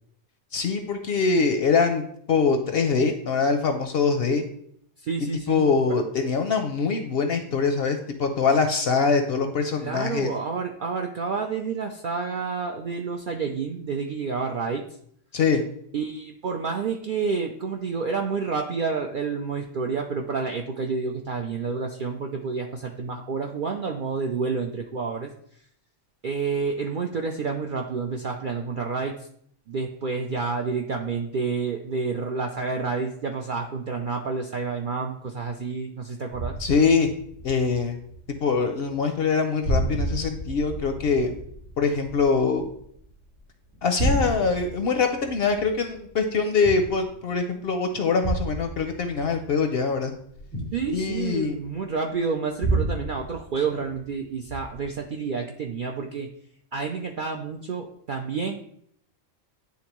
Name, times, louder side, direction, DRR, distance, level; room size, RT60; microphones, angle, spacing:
voice 1, 0.5-2.0 2.3-4.4 5.5-10.3 15.3-15.6 36.6-37.1 37.4-38.0 38.4-41.3 41.8-42.7 43.8-50.1 50.9-51.6, left 5 dB, 60° left, 6 dB, 0.7 m, -23 dB
voice 2, 5.0-6.0 9.8-14.9 15.9-25.3 26.2-29.2 29.7-36.6 50.7-56.3 56.7-58.6, right 5 dB, 65° right, 2 dB, 0.5 m, -29 dB
sound 1, 36.3-38.6 38.8-39.3 39.6-43.3 43.7-47.4 48.2-51.8 52.6-54.1 54.5-55.0, right 2 dB, 85° right, 2.8 m, -31 dB
9.8 x 3.5 x 3.0 m, 0.67 s
omnidirectional pair, 1.4 m